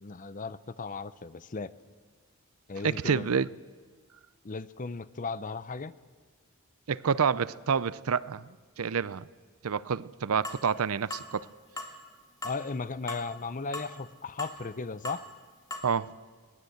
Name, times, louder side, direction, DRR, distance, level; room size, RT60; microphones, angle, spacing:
voice 1, 0.0-1.7 2.7-3.3 4.4-5.9 12.4-15.3, left 4 dB, 35° left, 0.7 m, -36 dB
voice 2, 2.8-3.5 6.9-8.4 8.8-9.3 9.6-11.5 15.8-16.1, right 6 dB, 80° right, 0.6 m, -28 dB
sound 1, 10.4-10.6 11.1-11.3 11.8-11.9 12.4-12.6 13.1-13.3 13.7-13.9 14.4-14.6 15.0-15.2 15.7-15.8, left 1 dB, 15° left, 2.0 m, -38 dB
21.5 x 18.5 x 8.0 m
head